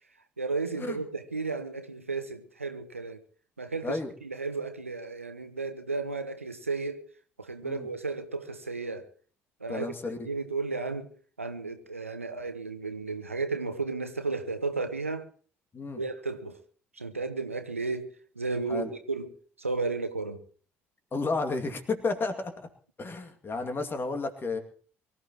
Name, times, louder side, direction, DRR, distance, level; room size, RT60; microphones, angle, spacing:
voice 1, 0.4-3.2 3.6-7.1 7.4-9.1 9.6-9.9 10.2-11.1 11.4-15.3 15.9-16.6 16.9-18.1 18.4-19.3 19.6-20.4, right 3 dB, 85° right, 0.8 m, -33 dB
voice 2, 9.7-10.2 15.7-16.0 18.7-18.9 21.1-22.7 23.0-24.6, left 3 dB, 30° left, 2.3 m, -32 dB
23.5 x 14.0 x 3.0 m
figure-of-eight pair, 50°, 7 cm